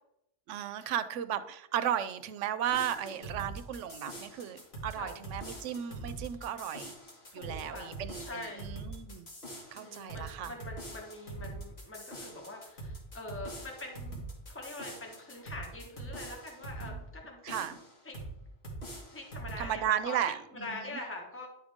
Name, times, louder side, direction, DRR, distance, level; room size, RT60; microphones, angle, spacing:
voice 1, 0.5-6.9 7.3-9.3 9.7-10.5 16.8-17.0 17.4-17.8 19.6-21.0, right 10 dB, 85° right, 12 dB, 0.9 m, -35 dB
sound 1, 2.7-17.0 17.5-18.3 18.6-19.7, right 2 dB, 60° left, 2.3 m, -44 dB
voice 2, 7.3-8.7 9.7-17.8 18.0-18.2 19.1-20.2 20.5-21.5, left 2 dB, 10° left, 0 dB, 1.4 m, -44 dB
10.5 x 5.0 x 3.6 m, 0.81 s
omnidirectional pair, 1.2 m